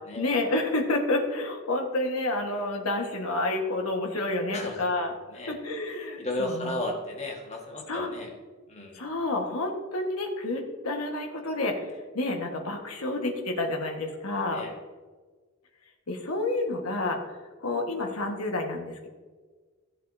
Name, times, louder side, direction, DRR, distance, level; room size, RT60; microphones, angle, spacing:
voice 1, 0.2-5.1 5.5-6.7 7.9-8.1 8.9-11.9 12.1-14.6 16.1-17.2 17.6-19.1, left 2 dB, 90° left, 2 dB, 1.6 m, -29 dB
voice 2, 4.5-4.9 5.3-5.6 6.2-8.3 8.7-9.0 14.5-14.7, left 1 dB, 30° left, 0 dB, 1.7 m, -34 dB
16.5 x 7.4 x 2.8 m, 1.4 s
head